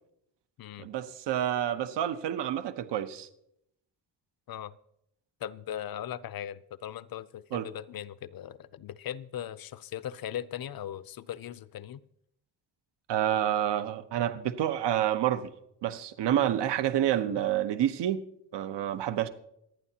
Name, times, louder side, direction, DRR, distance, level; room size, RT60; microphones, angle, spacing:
voice 1, 0.8-3.3 7.5-7.7 13.1-15.5 15.8-18.2 18.5-19.3, right 11 dB, 70° right, 0.9 m, -28 dB
voice 2, 5.4-12.0, left 10 dB, 55° left, 0.5 m, -39 dB
27.0 x 9.1 x 2.8 m
cardioid pair, 95°, 43 cm